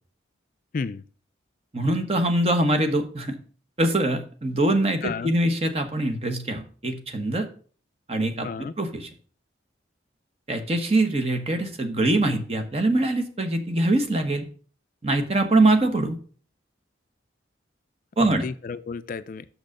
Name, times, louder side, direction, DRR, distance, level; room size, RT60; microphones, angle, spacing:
voice 1, 0.7-1.0 5.0-5.3 8.4-8.7 18.3-19.4, left 5 dB, 45° left, 14 dB, 0.4 m, -32 dB
voice 2, 1.7-3.4 3.8-7.5 8.1-9.1 10.5-14.5 15.0-16.2 18.2-18.4, right 2 dB, 30° right, 7 dB, 1.1 m, -23 dB
6.2 x 6.2 x 6.5 m, 0.43 s
head